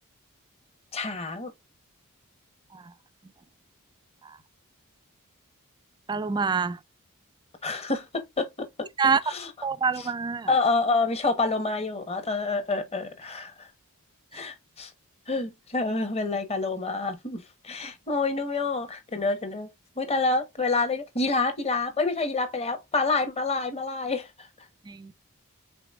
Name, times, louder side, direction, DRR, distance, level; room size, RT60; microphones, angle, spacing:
voice 1, 0.9-1.5 7.6-8.5 9.3-9.5 10.0-10.1 10.5-13.7 14.3-14.9 15.3-19.7 20.0-24.5, left 3 dB, 30° left, 1.0 m, -28 dB
voice 2, 6.1-6.8 9.0-9.2 9.6-10.5 14.3-14.4 24.9-25.1, right 5 dB, 20° right, 0.3 m, -26 dB
5.0 x 4.0 x 2.4 m
head